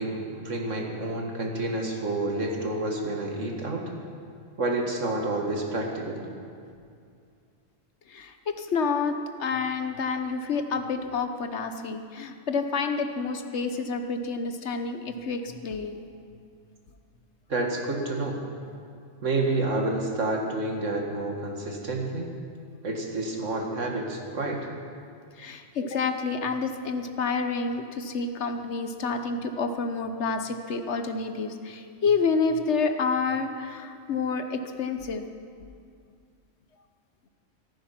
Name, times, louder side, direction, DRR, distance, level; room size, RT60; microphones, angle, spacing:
voice 1, 0.0-3.8 4.6-6.2 17.5-18.4 19.2-22.4 22.8-24.7, right 2 dB, 70° right, 1 dB, 2.3 m, -29 dB
voice 2, 8.1-16.0 25.4-35.2, left 4 dB, 60° left, 7 dB, 1.2 m, -29 dB
14.5 x 14.0 x 5.9 m, 2.3 s
omnidirectional pair, 1.3 m